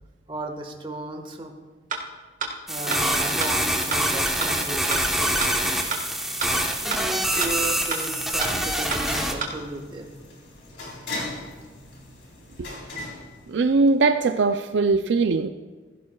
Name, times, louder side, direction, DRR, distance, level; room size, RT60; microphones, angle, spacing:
voice 1, 0.3-1.5 2.7-5.8 6.8-10.1, right 2 dB, 30° right, 3 dB, 1.4 m, -35 dB
sound 1, 1.9-2.0 2.4-2.5 2.9-3.0 3.4-3.5 3.9-4.0 4.4-4.5 4.9-5.0 5.4-5.5 5.9-6.0 6.4-6.5 6.9-7.0 7.4-7.5 7.9-8.0 8.4-8.5 8.9-9.0 9.4-9.5, right 5 dB, 45° right, 1.5 m, -28 dB
sound 2, 2.7-9.3, right 1 dB, ahead, 1.1 m, -25 dB
sound 3, 6.0-14.1, left 2 dB, 70° left, 3.8 m, -39 dB
voice 2, 13.5-15.5, right 3 dB, 70° right, 9 dB, 0.4 m, -20 dB
16.0 x 15.5 x 2.3 m, 1.4 s
head